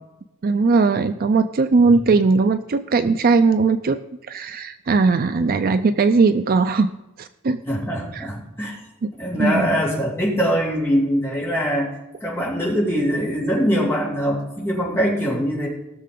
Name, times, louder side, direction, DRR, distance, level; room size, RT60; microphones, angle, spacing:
voice 1, 0.4-4.0 4.3-6.9 7.2-7.6 8.1-8.3 9.0-9.7, right 4 dB, 45° right, 10 dB, 0.4 m, -19 dB
voice 2, 7.6-8.8 9.2-11.9 12.2-15.7, equal, 10° left, -4 dB, 3.2 m, -22 dB
18.0 x 6.6 x 3.8 m, 0.98 s
head